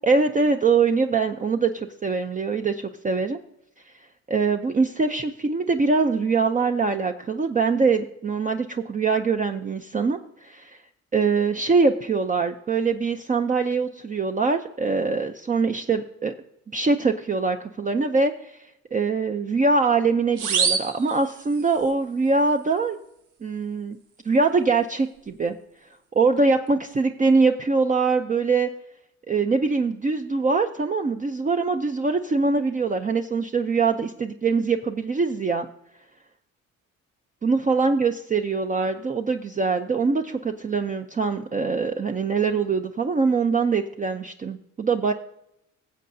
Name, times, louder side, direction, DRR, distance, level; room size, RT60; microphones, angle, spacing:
voice 1, 0.0-3.4 4.3-10.8 11.1-16.3 16.7-18.5 18.9-23.0 23.4-24.0 24.2-25.6 26.1-28.7 29.3-35.7 37.4-45.1, right 4 dB, 25° right, 5 dB, 0.5 m, -23 dB
sound 1, 20.4-21.9, right 6 dB, 85° right, 1.3 m, -26 dB
19.0 x 7.5 x 2.7 m, 0.81 s
cardioid pair, 90°, 30 cm